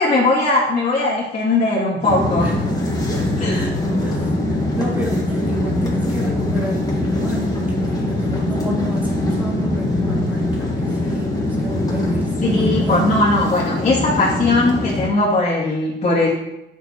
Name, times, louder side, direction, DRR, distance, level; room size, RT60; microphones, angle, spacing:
voice 1, 0.0-2.5 3.4-3.6 12.4-16.3, left 2 dB, 35° left, -8 dB, 2.5 m, -19 dB
sound 1, 2.0-15.1, left 1 dB, 20° left, 2.4 m, -22 dB
voice 2, 2.4-2.7 3.5-13.2, equal, 10° right, -4 dB, 3.5 m, -31 dB
8.9 x 6.8 x 4.8 m, 0.92 s
cardioid pair, 90°, 20 cm